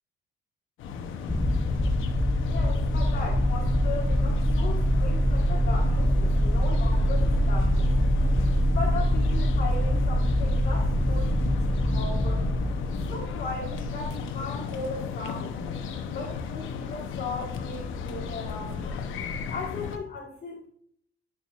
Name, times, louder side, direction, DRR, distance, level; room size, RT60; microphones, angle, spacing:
sound 1, 0.8-20.0, left 6 dB, 85° left, 0.8 m, -35 dB
sound 2, 1.3-14.3, equal, 5° left, 0.4 m, -24 dB
voice 1, 2.4-7.9 8.6-12.5 13.1-15.6 16.1-19.1 19.5-20.7, left 3 dB, 50° left, -3 dB, 1.6 m, -37 dB
9.1 x 5.9 x 2.4 m, 0.65 s
cardioid pair, 90°, 20 cm